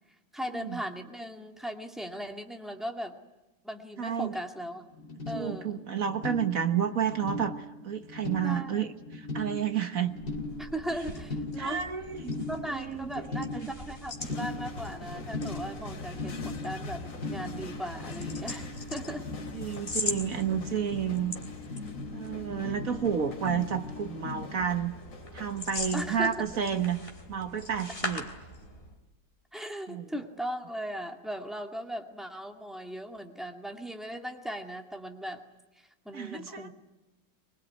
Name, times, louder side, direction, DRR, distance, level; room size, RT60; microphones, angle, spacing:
voice 1, 0.3-3.2 3.6-4.8 5.3-5.8 8.4-8.9 10.6-11.8 12.5-19.3 22.5-23.0 25.9-26.4 29.5-35.4 35.8-36.7, equal, ahead, 4 dB, 1.9 m, -38 dB
voice 2, 4.0-4.3 5.3-10.2 11.6-12.4 12.7-13.4 19.5-21.3 22.1-24.9 25.3-28.3 29.9-30.1 36.1-36.7, right 8 dB, 50° right, 8 dB, 1.5 m, -31 dB
sound 1, 4.9-24.5, left 2 dB, 55° left, 3.4 m, -40 dB
sound 2, 10.1-29.0, left 2 dB, 30° left, 3.5 m, -42 dB
sound 3, 14.2-26.6, left 3 dB, 75° left, 3.1 m, -44 dB
24.0 x 22.0 x 9.6 m, 1.0 s
omnidirectional pair, 2.0 m